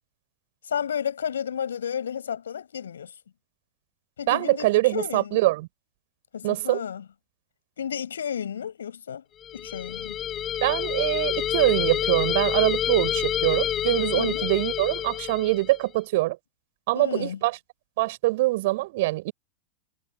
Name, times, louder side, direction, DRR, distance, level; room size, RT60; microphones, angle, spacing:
voice 1, 0.6-3.1 4.2-5.4 6.3-7.0 7.8-9.2 9.5-10.2 14.1-14.5 16.9-17.4, left 8 dB, 65° left, 7.7 m, -32 dB
voice 2, 4.3-5.7 6.4-6.8 10.6-16.4 16.9-17.6 18.0-19.3, right 19 dB, 50° right, 4.5 m, -24 dB
sound 1, 9.4-15.8, left 10 dB, 25° left, 1.7 m, -28 dB
figure-of-eight pair, 90°, 0 cm